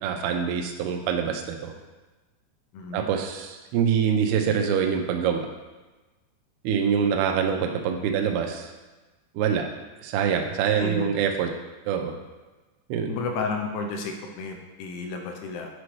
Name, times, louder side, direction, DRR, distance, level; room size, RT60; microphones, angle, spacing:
voice 1, 0.0-1.7 2.9-5.5 6.6-8.7 9.4-9.7 10.0-11.5 11.9-12.1 12.9-13.1, right 7 dB, 85° right, 3 dB, 2.2 m, -25 dB
voice 2, 2.7-3.1 10.7-11.1 13.1-15.7, left 4 dB, 85° left, 3 dB, 3.0 m, -32 dB
9.8 x 5.1 x 3.2 m, 1.2 s
omnidirectional pair, 5.4 m